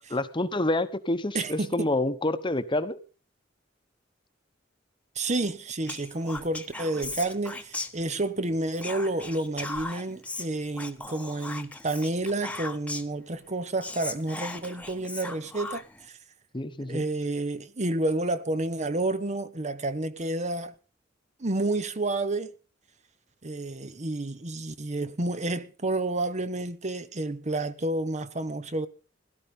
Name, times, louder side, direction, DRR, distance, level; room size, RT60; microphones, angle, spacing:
voice 1, 0.1-3.0 16.5-17.0, left 2 dB, 25° left, 1.1 m, -28 dB
voice 2, 1.3-1.9 5.2-16.2 16.8-20.7 21.4-22.5 23.4-28.9, right 2 dB, 40° right, 1.0 m, -30 dB
Whispering, 5.9-8.4 8.7-13.2 13.5-13.6 13.8-16.1, left 2 dB, 5° left, 1.1 m, -38 dB
17.0 x 12.0 x 5.4 m
head